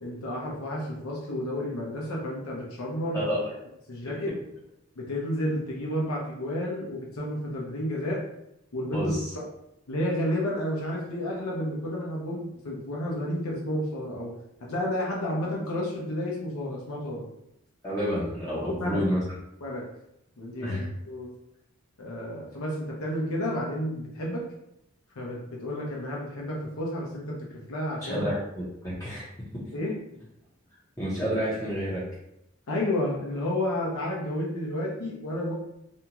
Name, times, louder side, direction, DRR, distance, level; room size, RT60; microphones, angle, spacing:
voice 1, 0.0-3.2 3.9-4.3 5.0-8.2 8.7-9.4 9.9-14.3 14.7-17.2 18.6-19.0 19.6-19.8 20.4-21.3 22.0-24.4 25.2-28.3 29.7-29.9 32.7-35.5, left 1 dB, 85° left, -3 dB, 0.7 m, -31 dB
voice 2, 3.1-3.6 4.1-4.2 8.9-9.3 17.8-19.2 20.6-20.8 28.0-29.3 31.0-32.0, equal, 15° left, -9 dB, 0.7 m, -29 dB
2.6 x 2.3 x 2.9 m, 0.83 s
head